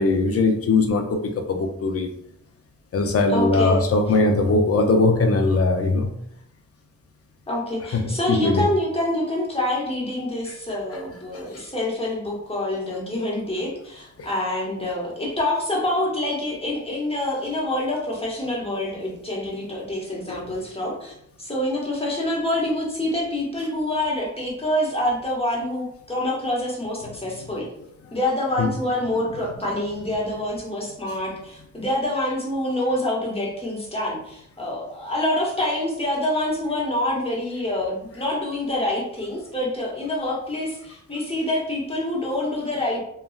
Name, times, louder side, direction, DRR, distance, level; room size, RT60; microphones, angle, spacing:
voice 1, 0.0-2.1 2.9-6.1 7.9-8.6 10.5-10.6 11.5-11.6 14.2-14.3 20.3-20.4 28.6-28.7, left 3 dB, 55° left, 5 dB, 0.5 m, -20 dB
voice 2, 3.3-3.8 7.5-27.7 28.1-43.0, left 1 dB, 20° left, -4 dB, 1.0 m, -26 dB
3.1 x 2.2 x 2.3 m, 0.74 s
wide cardioid pair, 75°, 29 cm